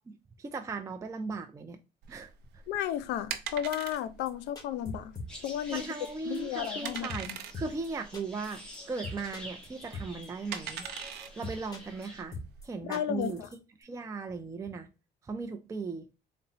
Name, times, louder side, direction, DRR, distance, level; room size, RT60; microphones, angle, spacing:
voice 1, 0.1-1.8 2.1-2.3 5.7-10.9 11.4-12.4 12.6-13.4 13.8-14.9 15.2-16.1, right 4 dB, 20° right, 0.4 m, -37 dB
sound 1, 2.0-12.7, right 9 dB, 80° right, 0.6 m, -43 dB
voice 2, 2.7-5.1 5.4-5.8 6.3-7.4 12.8-13.5, left 11 dB, 85° left, 0.5 m, -33 dB
sound 2, 3.7-4.0 4.3-4.4 4.6-5.5 5.7-6.1 6.3-6.4 6.6-6.7 6.9-7.3 7.5-7.9 8.1-8.8 9.0-9.7 9.9-10.3 10.5-10.9 11.1-11.2 11.4-12.1 12.3-12.7 12.9-13.5 13.8-13.9, left 3 dB, 20° left, 1.5 m, -41 dB
sound 3, 5.3-12.2, equal, 5° left, 1.2 m, -47 dB
4.0 x 2.1 x 4.0 m
cardioid pair, 110°, 17 cm